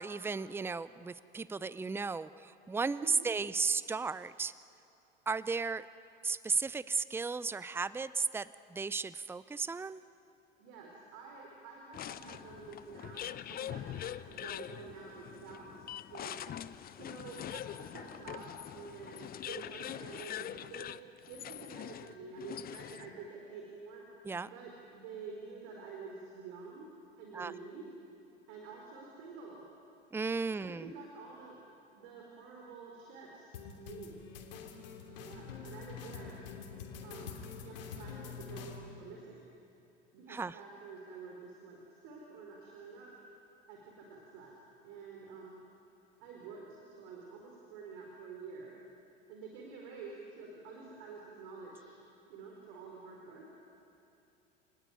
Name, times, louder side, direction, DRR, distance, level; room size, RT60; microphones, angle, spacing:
voice 1, 0.0-4.5 5.3-5.9 6.2-10.0 24.2-24.5 27.3-27.5 30.1-30.9 40.3-40.6, right 4 dB, 10° right, 17 dB, 0.6 m, -35 dB
voice 2, 10.6-16.5 16.9-24.0 24.4-26.9 27.2-27.8 28.5-29.6 30.5-31.6 31.9-34.2 35.2-36.4 37.0-39.5 40.1-43.1 43.7-44.5 44.8-45.5 46.2-48.7 49.3-51.8 52.3-53.4, right 4 dB, 60° right, -1 dB, 4.4 m, -49 dB
sound 1, 11.9-23.2, left 11 dB, 30° left, 0.7 m, -44 dB
sound 2, 33.5-38.8, left 6 dB, 70° left, 3.0 m, -46 dB
28.0 x 19.0 x 9.4 m, 2.7 s
figure-of-eight pair, 75°, 29 cm